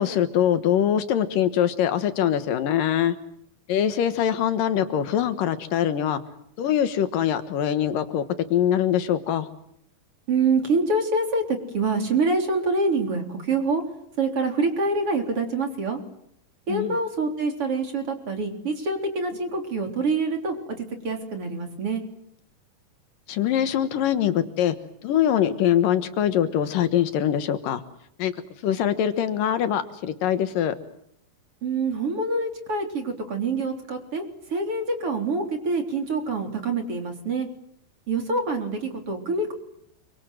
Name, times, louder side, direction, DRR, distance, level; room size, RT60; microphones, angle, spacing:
voice 1, 0.0-3.1 3.7-6.2 6.6-8.2 8.5-9.5 16.7-17.0 23.3-24.8 25.0-27.8 28.2-28.3 28.6-30.8, left 10 dB, 75° left, 11 dB, 3.0 m, -23 dB
voice 2, 10.3-13.8 14.2-16.0 16.7-22.0 31.6-34.2 34.5-37.5 38.1-39.5, right 3 dB, 40° right, 5 dB, 4.3 m, -26 dB
27.5 x 24.5 x 7.8 m, 0.73 s
omnidirectional pair, 4.0 m